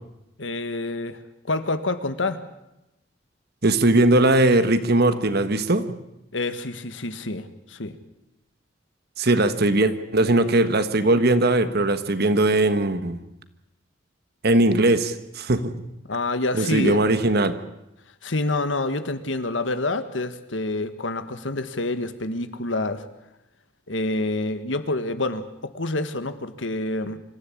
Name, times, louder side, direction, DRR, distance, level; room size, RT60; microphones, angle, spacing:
voice 1, 0.4-1.2 1.4-2.4 6.3-8.0 16.1-17.1 18.2-23.0 23.9-25.5 25.7-27.2, left 2 dB, 75° left, 10 dB, 1.7 m, -27 dB
voice 2, 3.6-5.8 9.2-13.2 14.4-15.9 16.5-17.5, right 2 dB, 55° right, 11 dB, 1.5 m, -20 dB
26.0 x 14.5 x 8.6 m, 0.92 s
head